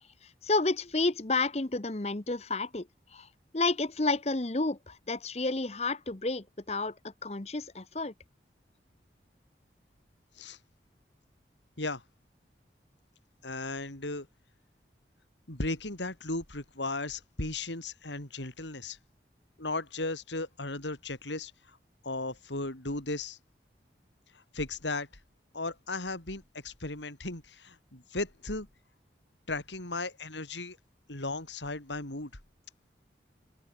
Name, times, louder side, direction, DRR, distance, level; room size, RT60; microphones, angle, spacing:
voice 1, 0.4-2.9 3.1-3.3 3.5-8.1, left 3 dB, 35° left, 1.0 m, -30 dB
voice 2, 13.4-14.3 15.5-19.0 19.6-21.5 22.0-23.4 24.5-25.1 25.5-28.7 29.5-30.8 31.1-32.3, left 2 dB, 85° left, 4.4 m, -36 dB
open air
head